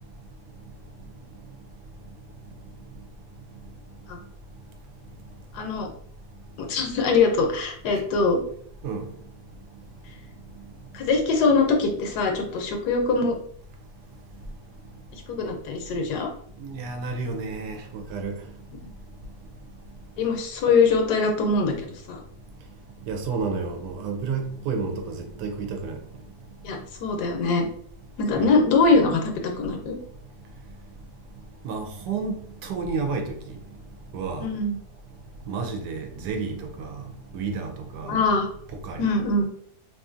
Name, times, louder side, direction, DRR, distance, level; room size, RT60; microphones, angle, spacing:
voice 1, 5.5-5.9 6.6-8.4 10.9-13.4 15.3-16.3 20.2-21.7 22.1-22.2 26.6-27.7 28.2-30.0 34.4-34.8 38.1-38.5 39.0-39.5, left 4 dB, 75° left, 1.2 m, -22 dB
voice 2, 16.6-18.3 23.1-26.0 28.4-28.6 31.6-32.3 32.6-33.6 34.1-34.5 35.5-37.0 37.3-38.1 38.8-39.1, right 4 dB, 90° right, 1.2 m, -31 dB
2.9 x 2.5 x 2.4 m
omnidirectional pair, 1.8 m